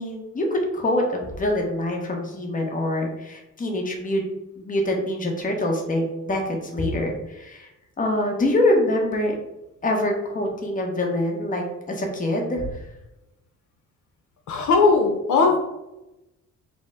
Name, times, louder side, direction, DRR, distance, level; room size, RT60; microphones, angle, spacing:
voice 1, 0.0-4.2 4.6-7.7 8.0-9.4 9.8-12.8, left 1 dB, 25° left, 1 dB, 0.9 m, -25 dB
voice 2, 14.5-15.6, left 4 dB, 75° left, 2 dB, 0.7 m, -18 dB
5.0 x 2.0 x 3.5 m, 0.95 s
cardioid pair, 90°, 30 cm